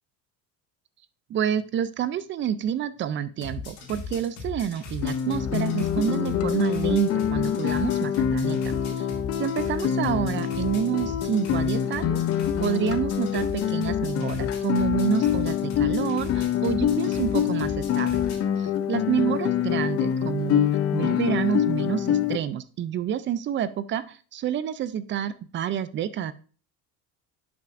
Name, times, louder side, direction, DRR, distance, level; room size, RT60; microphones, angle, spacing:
voice 1, 1.3-9.1 9.4-12.2 12.6-18.2 18.6-20.6 20.9-26.3, right 9 dB, 30° right, 15 dB, 0.4 m, -28 dB
sound 1, 3.4-18.4, left 4 dB, 80° left, 2.5 m, -38 dB
Guitar, 5.0-22.4, left 9 dB, 40° left, 0.5 m, -25 dB
10.5 x 5.9 x 2.5 m, 0.39 s
cardioid pair, 150°, 39 cm